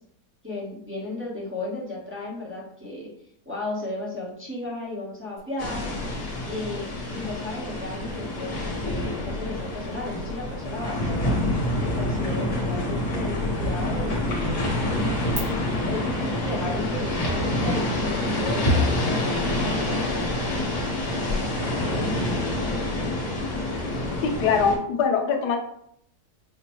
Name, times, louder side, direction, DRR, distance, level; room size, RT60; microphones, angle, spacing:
voice 1, 0.4-3.1 3.4-6.1 6.5-11.3 11.8-14.6 15.9-20.3, left 2 dB, 10° right, -6 dB, 0.9 m, -34 dB
sound 1, 5.4-15.4, right 6 dB, 85° right, 1.8 m, -50 dB
sound 2, 5.6-24.8, left 1 dB, 65° left, 1.6 m, -27 dB
voice 2, 24.2-25.6, left 6 dB, 90° left, 4 dB, 1.2 m, -22 dB
5.7 x 2.2 x 3.0 m, 0.70 s
omnidirectional pair, 1.7 m